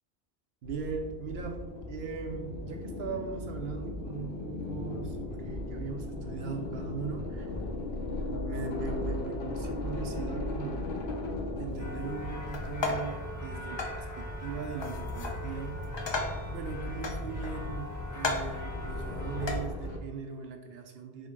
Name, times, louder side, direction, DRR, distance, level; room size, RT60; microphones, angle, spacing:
sound 1, 0.6-20.0, left 2 dB, 65° left, 0.8 m, -38 dB
voice 1, 0.6-7.5 8.3-10.9 11.6-13.8 14.2-15.8 16.5-21.3, right 5 dB, 70° right, 4 dB, 0.9 m, -39 dB
sound 2, 11.8-19.6, left 1 dB, 20° left, 0.8 m, -40 dB
sound 3, 12.5-13.2 13.8-14.0 14.8-15.4 15.8-16.5 17.0-17.7 18.2-18.6 19.4-19.6, left 3 dB, 45° left, 0.3 m, -34 dB
3.8 x 3.7 x 3.6 m, 1.2 s
omnidirectional pair, 1.1 m